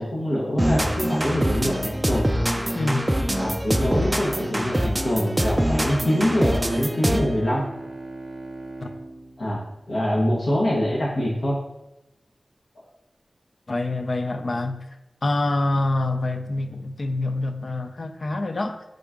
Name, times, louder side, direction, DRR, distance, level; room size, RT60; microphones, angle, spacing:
voice 1, 0.0-2.3 3.4-7.6 9.4-11.5, equal, 80° left, 0.9 m, -24 dB
sound 1, 0.6-7.4, equal, 20° right, 0.3 m, -24 dB
voice 2, 2.7-3.1 8.8-8.9 13.7-14.8 15.2-18.8, left 2 dB, 65° left, 0.4 m, -26 dB
Bowed string instrument, 5.0-10.6, right 2 dB, 60° right, 0.7 m, -39 dB
3.8 x 3.7 x 3.5 m
cardioid pair, 45°, 0 cm